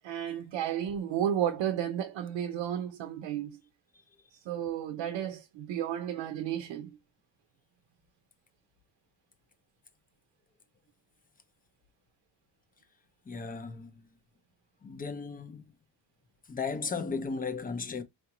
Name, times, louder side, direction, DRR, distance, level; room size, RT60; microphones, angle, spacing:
voice 1, 0.0-3.6 4.5-7.0, right 10 dB, 85° right, 0.7 m, -32 dB
voice 2, 13.3-14.0 14.8-15.7 16.5-18.0, left 5 dB, 20° left, 0.5 m, -35 dB
4.6 x 2.5 x 2.9 m
cardioid pair, 145°, 44 cm